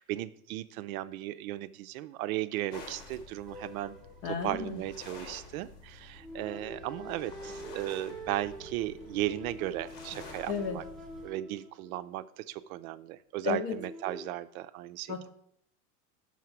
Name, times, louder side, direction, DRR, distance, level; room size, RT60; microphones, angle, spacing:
voice 1, 0.0-4.0 4.2-10.8 11.2-15.2, right 15 dB, 65° right, 13 dB, 0.5 m, -36 dB
sound 1, 2.7-11.3, left 3 dB, 80° left, 1.7 m, -50 dB
sound 2, 3.5-5.1 6.2-12.2 13.7-14.3, equal, ahead, 0.6 m, -46 dB
voice 2, 4.2-4.8 10.5-10.8 13.4-13.7 15.1-15.3, left 6 dB, 50° left, 4 dB, 0.8 m, -33 dB
5.9 x 4.7 x 5.8 m, 0.72 s
hypercardioid pair, 115°, 46 cm